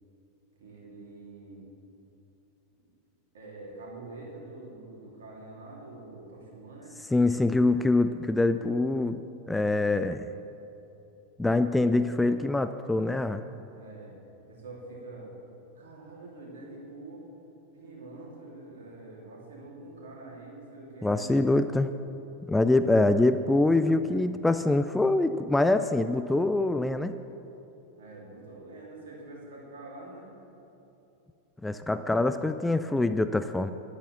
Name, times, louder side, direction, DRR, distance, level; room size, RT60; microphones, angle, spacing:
voice 1, 0.6-1.7 3.3-7.0 13.7-14.2 14.5-15.3 15.7-17.3 17.7-21.9 28.0-30.3, right 2 dB, 60° right, -3 dB, 3.0 m, -45 dB
voice 2, 7.1-9.2 9.5-10.3 11.4-13.4 21.0-21.9 22.5-27.1 31.6-33.7, left 2 dB, 5° left, 10 dB, 0.3 m, -24 dB
10.5 x 8.5 x 7.2 m, 2.9 s
figure-of-eight pair, 90°, 0 cm